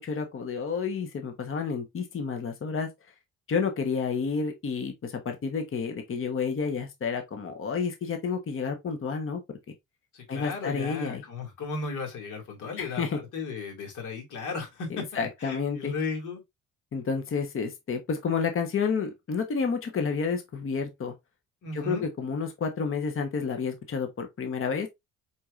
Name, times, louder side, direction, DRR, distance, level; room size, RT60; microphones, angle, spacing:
voice 1, 0.0-2.9 3.5-9.4 10.3-11.2 12.8-13.2 14.9-16.0 16.9-21.1 21.7-24.9, left 5 dB, 45° left, 1.1 m, -30 dB
voice 2, 10.1-13.0 13.3-15.1 15.4-16.4 21.6-22.1, left 4 dB, 80° left, 2.3 m, -35 dB
4.7 x 4.3 x 2.5 m
cardioid pair, 90°, 30 cm